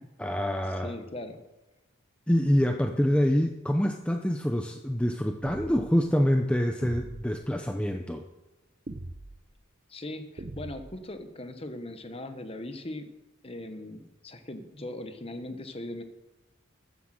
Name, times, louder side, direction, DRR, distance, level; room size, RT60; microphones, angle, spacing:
voice 1, 0.2-0.9 2.3-8.2, equal, 5° left, 4 dB, 0.5 m, -26 dB
voice 2, 0.8-1.4 9.9-13.1 13.4-16.0, left 1 dB, 25° left, 9 dB, 1.0 m, -39 dB
sound 1, 5.4-6.0 6.8-7.4 8.9-9.4 10.4-11.0, right 2 dB, 35° right, 0.7 m, -40 dB
12.5 x 8.2 x 7.5 m, 1.1 s
head